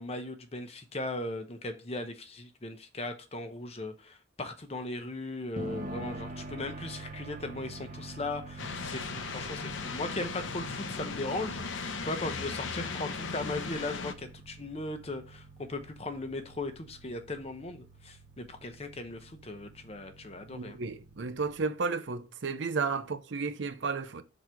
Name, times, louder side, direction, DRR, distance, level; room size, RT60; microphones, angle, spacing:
voice 1, 0.0-20.8, left 2 dB, 30° left, 0.8 m, -38 dB
sound 1, 5.6-21.6, right 2 dB, 45° right, 0.9 m, -46 dB
sound 2, 8.6-14.1, left 4 dB, 85° left, 0.7 m, -37 dB
voice 2, 20.5-24.2, right 4 dB, 70° right, 0.6 m, -33 dB
6.0 x 3.9 x 4.7 m
head